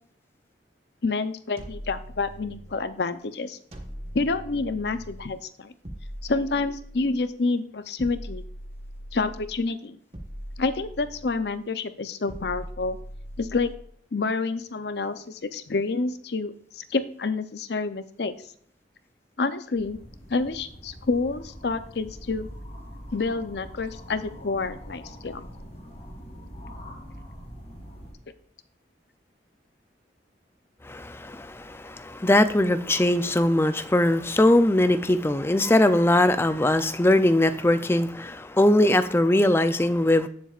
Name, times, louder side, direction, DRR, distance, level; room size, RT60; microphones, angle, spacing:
voice 1, 1.0-3.6 4.1-5.7 6.2-8.4 9.1-10.0 10.6-13.0 13.4-13.7 14.1-18.3 19.4-20.0 20.3-22.5 23.1-25.4, left 3 dB, 65° left, 11 dB, 0.6 m, -28 dB
sound 1, 1.6-2.9 3.7-5.3 5.8-7.3 8.0-9.6 10.1-11.5 12.3-13.9, equal, 35° right, 1.4 m, -40 dB
sound 2, 19.7-28.1, equal, 35° left, 3.2 m, -43 dB
voice 2, 30.9-40.3, left 1 dB, 15° left, 10 dB, 0.4 m, -21 dB
17.0 x 7.3 x 2.4 m, 0.63 s
head